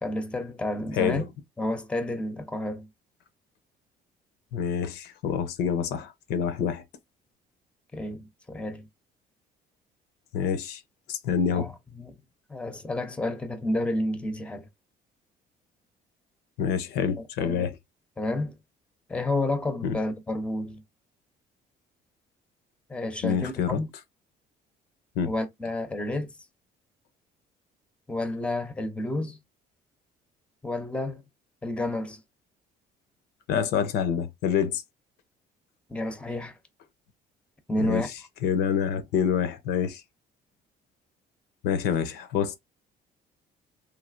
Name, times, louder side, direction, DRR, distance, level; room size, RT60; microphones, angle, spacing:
voice 1, 0.0-1.2 1.6-2.9 7.9-8.9 11.5-12.1 12.5-14.7 17.4-17.7 18.2-18.6 19.1-20.8 22.9-23.9 25.2-26.3 28.1-29.4 30.6-31.2 31.6-32.2 35.9-36.6 37.7-38.1, left 1 dB, 5° left, 0.6 m, -30 dB
voice 2, 4.5-6.8 10.3-10.8 11.1-11.7 16.6-17.8 19.8-20.0 23.2-23.8 25.2-25.3 33.5-34.8 37.8-38.0 38.4-40.0 41.6-42.6, left 7 dB, 85° left, 0.6 m, -27 dB
3.2 x 2.6 x 2.5 m
cardioid pair, 110°, 17 cm